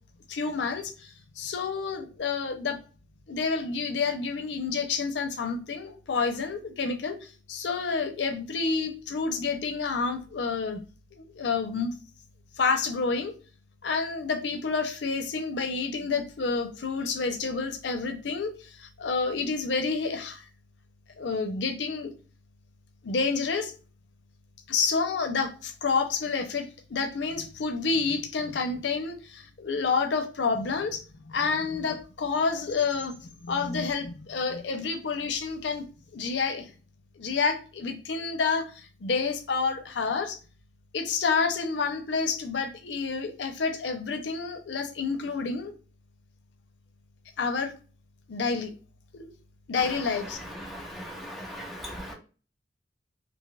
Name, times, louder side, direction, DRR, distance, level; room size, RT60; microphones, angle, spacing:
voice 1, 0.3-1.1 1.4-2.8 3.3-10.8 11.1-12.0 12.6-13.3 13.8-20.5 21.2-22.1 23.0-23.7 24.7-35.9 36.1-36.7 37.2-40.4 40.9-45.7 47.4-47.7 48.3-48.7 49.1-49.3 49.7-50.4, left 4 dB, 90° left, 0.5 m, -29 dB
voice 2, 50.7-52.1, equal, ahead, 0.6 m, -39 dB
3.3 x 2.7 x 2.2 m
head